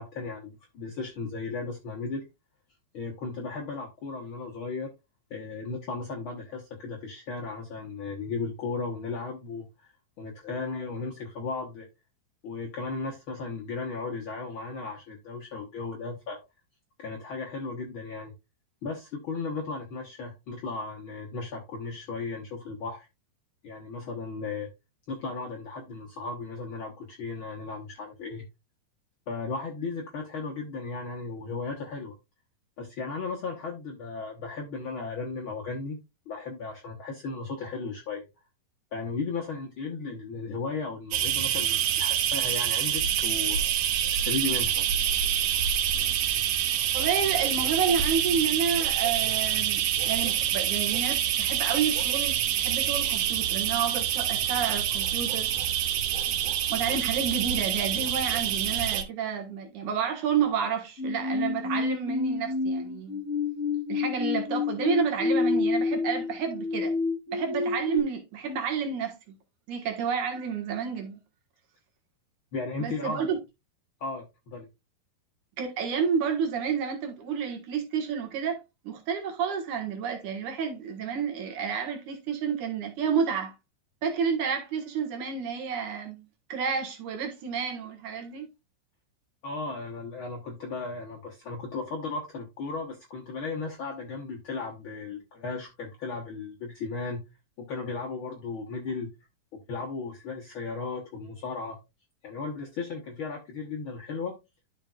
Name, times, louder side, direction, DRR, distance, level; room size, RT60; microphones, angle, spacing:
voice 1, 0.0-2.2 2.9-4.9 5.3-9.9 10.2-11.9 12.4-16.4 17.0-18.3 18.8-23.1 23.6-24.7 25.1-28.4 29.3-32.1 32.8-36.0 36.3-38.3 38.9-44.9 72.5-73.3 74.0-74.7 89.4-97.2 97.6-99.1 99.5-101.8 102.2-104.3, left 4 dB, 80° left, 1.1 m, -35 dB
sound 1, 41.1-59.0, right 10 dB, 85° right, 2.7 m, -26 dB
voice 2, 46.9-55.5 56.7-63.2 63.9-66.9 67.3-69.2 69.7-71.2 72.8-73.4 75.6-78.6 78.8-83.5 84.0-86.2 86.5-88.5, right 6 dB, 65° right, 2.7 m, -30 dB
sound 2, 61.0-68.0, left 4 dB, 25° left, 2.1 m, -28 dB
12.0 x 5.2 x 2.4 m
omnidirectional pair, 4.2 m